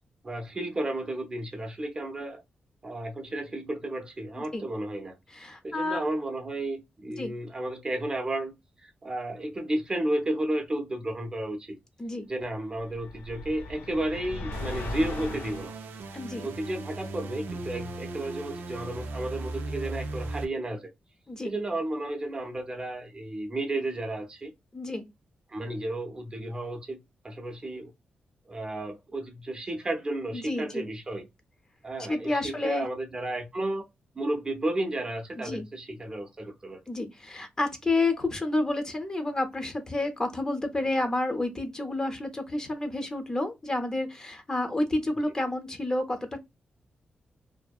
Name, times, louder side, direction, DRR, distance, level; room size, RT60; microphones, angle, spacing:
voice 1, 0.2-2.4 2.8-5.2 5.6-8.5 8.8-11.8 12.3-15.7 16.4-20.9 21.4-24.5 25.5-27.0 27.2-27.9 28.5-31.3 31.8-33.8 34.1-36.8, right 1 dB, 25° right, 0.5 m, -32 dB
voice 2, 4.3-4.7 5.3-6.1 7.2-7.3 12.0-12.3 16.1-16.5 21.3-21.5 24.7-25.1 30.3-30.9 32.1-32.9 35.4-35.6 36.9-46.4, left 2 dB, 20° left, 0.5 m, -30 dB
sound 1, 12.8-15.7, left 2 dB, 75° left, 0.4 m, -37 dB
sound 2, 14.5-20.4, right 2 dB, 90° right, 0.4 m, -37 dB
2.6 x 2.0 x 2.3 m
wide cardioid pair, 140°, 3 cm